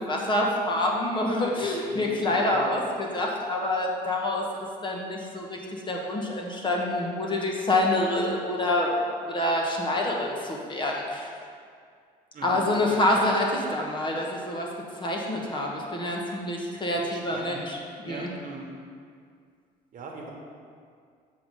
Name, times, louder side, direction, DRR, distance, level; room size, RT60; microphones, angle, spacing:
voice 1, 0.0-4.4 4.8-5.6 5.9-9.0 9.2-11.3 12.4-14.7 15.0-18.3, left 1 dB, 30° left, -1 dB, 1.2 m, -27 dB
voice 2, 1.6-2.7 12.3-13.3 16.9-17.6 18.1-18.7 19.9-20.3, right 3 dB, 55° right, -1 dB, 1.3 m, -41 dB
7.0 x 3.8 x 6.3 m, 2.2 s
cardioid pair, 110°, 17 cm